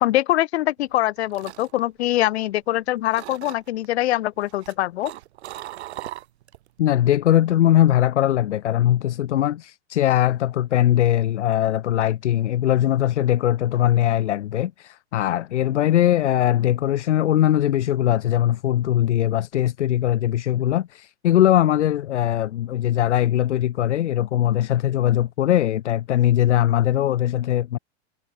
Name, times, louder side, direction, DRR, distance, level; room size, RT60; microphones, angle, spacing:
voice 1, 0.0-5.1, left 15 dB, 70° left, 1.2 m, -23 dB
sound 1, 0.9-2.8 3.1-3.9 4.4-6.7 7.0-7.3, right 14 dB, 70° right, 1.4 m, -39 dB
voice 2, 6.8-27.8, left 12 dB, 90° left, 1.6 m, -20 dB
supercardioid pair, 155°, 34 cm